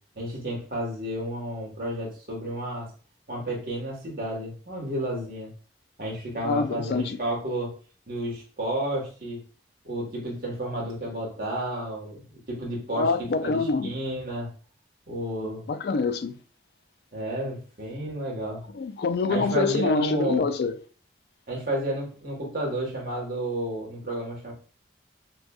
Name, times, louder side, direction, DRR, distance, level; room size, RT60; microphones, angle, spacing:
voice 1, 0.1-2.9 3.3-5.5 6.0-7.7 8.1-9.4 9.8-12.2 12.5-13.1 13.4-14.5 15.1-15.6 17.1-18.6 19.3-20.4 21.5-24.5, right 1 dB, 55° right, 1.5 m, -31 dB
voice 2, 6.4-7.2 12.9-13.9 15.7-16.4 18.7-20.8, left 4 dB, 65° left, 0.4 m, -26 dB
6.1 x 2.3 x 2.3 m
head